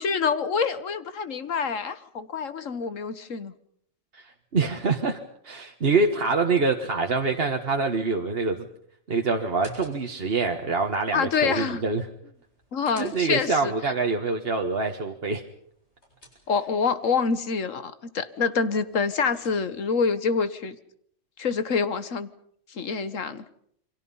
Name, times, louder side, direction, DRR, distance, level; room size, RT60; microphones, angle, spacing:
voice 1, 0.0-3.5 11.1-11.8 12.7-13.7 16.5-20.8 21.4-22.3 22.7-23.4, left 5 dB, 75° left, 13 dB, 1.6 m, -26 dB
voice 2, 4.1-8.7 9.1-12.1 13.0-15.4, right 4 dB, 50° right, 3 dB, 1.5 m, -25 dB
sound 1, 9.4-10.4 12.3-13.6 15.6-16.9 18.8-20.0, equal, 55° left, 7.8 m, -51 dB
29.0 x 24.0 x 5.6 m, 0.66 s
omnidirectional pair, 1.4 m